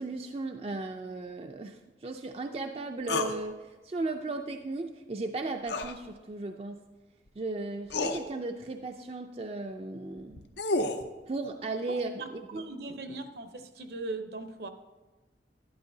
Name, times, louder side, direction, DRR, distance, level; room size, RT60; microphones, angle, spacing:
voice 1, 0.0-6.8 7.4-10.5 11.3-12.1 12.5-12.7, right 3 dB, 35° right, 0.4 m, -36 dB
sound 1, 3.1-3.4 5.7-5.9 7.3-7.4 7.9-8.2 10.2-11.0, left 2 dB, 75° left, 0.7 m, -30 dB
voice 2, 11.9-14.7, right 2 dB, 65° right, 0.8 m, -39 dB
12.5 x 11.0 x 2.7 m
head